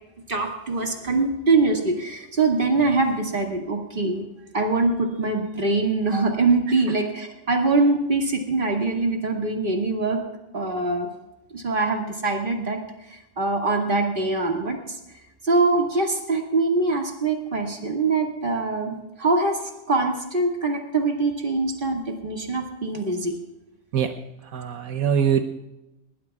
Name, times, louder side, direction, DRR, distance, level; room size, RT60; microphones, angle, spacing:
voice 1, 0.3-4.2 4.5-10.2 10.5-11.1 11.5-12.8 13.1-15.0 15.4-19.6 19.9-23.3, right 3 dB, 40° right, 1 dB, 2.3 m, -23 dB
voice 2, 24.5-25.4, right 8 dB, 75° right, 6 dB, 1.2 m, -22 dB
21.0 x 19.0 x 2.4 m, 0.97 s
omnidirectional pair, 1.5 m